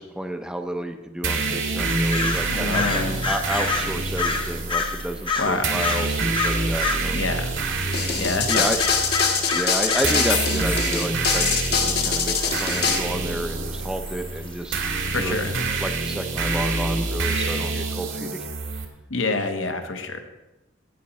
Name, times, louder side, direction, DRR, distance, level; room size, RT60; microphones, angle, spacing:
voice 1, 0.0-7.2 8.5-8.8 9.5-14.8 15.2-15.4 15.8-18.5, right 1 dB, 5° right, 6 dB, 0.6 m, -31 dB
sound 1, 1.2-18.8, right 3 dB, 75° right, 1.6 m, -27 dB
sound 2, 1.9-7.2 7.5-7.9 8.5-10.3 10.6-10.7 12.4-12.6 13.3-13.4 14.1-14.3 15.1-15.2 15.4-15.5 15.8-15.9, left 4 dB, 25° left, 0.9 m, -28 dB
voice 2, 2.5-3.3 5.4-5.7 7.1-7.5 8.1-8.7 15.1-15.5 19.1-20.2, left 3 dB, 75° left, 5 dB, 1.2 m, -26 dB
sound 3, 7.9-13.0, left 6 dB, 55° left, 1.4 m, -23 dB
17.0 x 5.8 x 4.2 m, 1.0 s
head